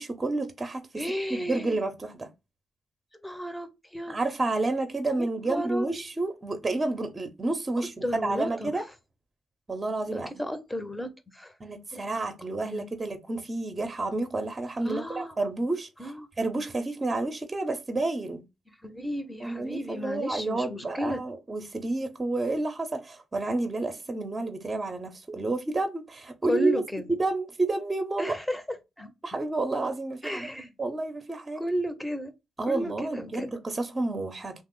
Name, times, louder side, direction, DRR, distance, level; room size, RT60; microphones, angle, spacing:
voice 1, 0.0-1.0 1.3-2.3 4.1-7.9 8.2-8.8 9.7-10.3 11.6-15.9 16.4-18.4 19.4-26.8 27.1-28.3 29.2-30.5 30.8-31.6 32.6-34.6, right 2 dB, 30° right, 0.7 m, -30 dB
voice 2, 1.0-1.8 3.2-4.2 5.2-5.9 8.0-8.7 10.1-11.5 11.9-12.2 12.6-12.9 14.8-15.4 16.0-16.3 18.8-21.2 26.5-27.0 28.2-28.6 29.0-29.1 30.2-30.7 31.6-32.3 32.7-33.5, equal, 5° left, 0.8 m, -33 dB
2.9 x 2.0 x 3.7 m
supercardioid pair, 65°, 0 cm